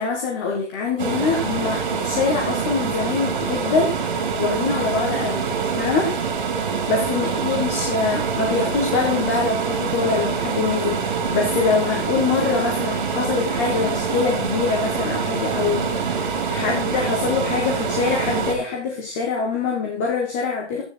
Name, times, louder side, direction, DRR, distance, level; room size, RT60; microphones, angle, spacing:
voice 1, 0.0-4.0 4.4-6.1 6.9-20.8, left 5 dB, 10° left, 0 dB, 1.4 m, -24 dB
sound 1, 1.0-18.6, right 6 dB, 40° right, 3.7 m, -25 dB
13.0 x 9.8 x 4.7 m, 0.38 s
hypercardioid pair, 180°, 34 cm